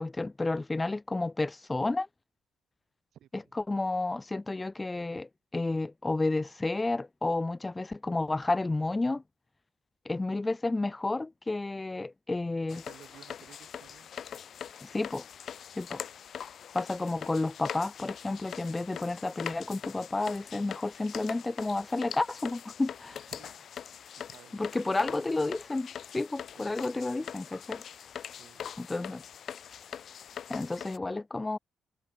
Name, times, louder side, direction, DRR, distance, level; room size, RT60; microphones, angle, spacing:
voice 1, 0.0-2.1 3.3-9.2 10.1-12.8 14.8-15.3 15.8-16.0 16.7-23.2 24.5-27.8 28.8-29.2 30.5-31.6, left 2 dB, 20° left, 0.5 m, -31 dB
voice 2, 3.1-3.5 12.7-14.1 23.1-23.7 24.1-25.2 26.6-26.8 28.3-28.6, right 11 dB, 70° right, 7.8 m, -56 dB
sound 1, 12.7-31.0, left 8 dB, 60° left, 1.6 m, -43 dB
cardioid pair, 90°, 0 cm